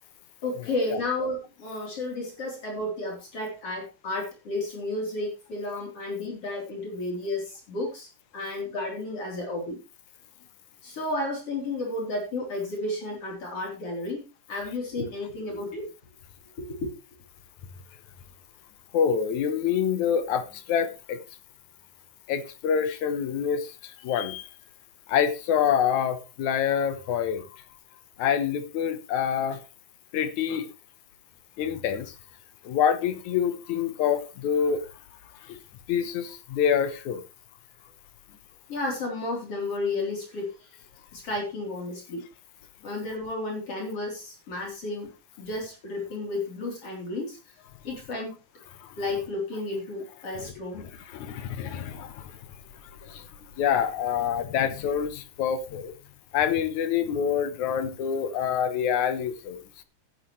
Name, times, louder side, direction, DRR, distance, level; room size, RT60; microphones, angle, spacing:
voice 1, 0.4-9.8 10.8-15.9 16.6-16.9 38.7-40.5 41.1-42.2 42.8-45.1 45.4-47.4 47.8-48.3 49.0-50.9, left 2 dB, 45° left, 4.6 m, -32 dB
voice 2, 18.9-20.4 20.7-21.2 22.3-23.6 24.0-24.4 25.1-27.4 28.2-29.6 30.1-30.7 31.6-32.1 32.7-34.8 35.9-37.2 51.1-52.1 53.6-55.9 56.3-59.6, left 8 dB, 70° left, 2.3 m, -26 dB
14.0 x 10.0 x 3.2 m
omnidirectional pair, 3.6 m